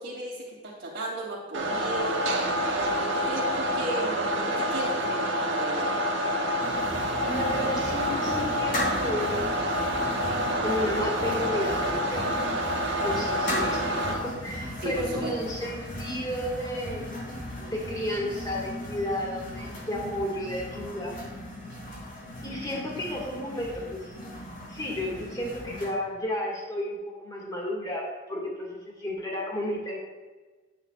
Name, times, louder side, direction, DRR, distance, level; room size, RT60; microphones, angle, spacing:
voice 1, 0.0-2.2 2.7-6.0 14.8-15.4, right 1 dB, 55° right, -4 dB, 3.0 m, -35 dB
sound 1, 1.5-14.1, equal, 75° right, 1.4 m, -28 dB
sound 2, 6.6-25.9, equal, 45° left, 3.2 m, -37 dB
voice 2, 7.2-9.4 10.6-12.4 13.0-17.1 17.6-21.2 22.4-24.1 24.7-30.0, left 1 dB, 20° left, -2 dB, 2.1 m, -32 dB
10.5 x 9.9 x 2.5 m, 1.3 s
head